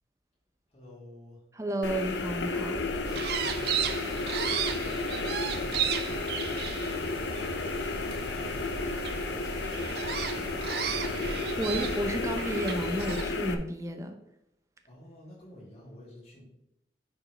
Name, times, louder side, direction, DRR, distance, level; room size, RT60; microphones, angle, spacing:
voice 1, 0.7-1.4 3.1-10.6 14.8-16.4, left 1 dB, 35° left, -6 dB, 2.9 m, -51 dB
voice 2, 1.6-2.8 11.0-14.2, right 1 dB, 15° right, 6 dB, 0.6 m, -32 dB
sound 1, 1.8-13.5, left 3 dB, 85° left, 0.7 m, -33 dB
sound 2, 3.1-13.2, right 8 dB, 65° right, 0.4 m, -35 dB
9.9 x 4.4 x 3.3 m, 0.80 s
head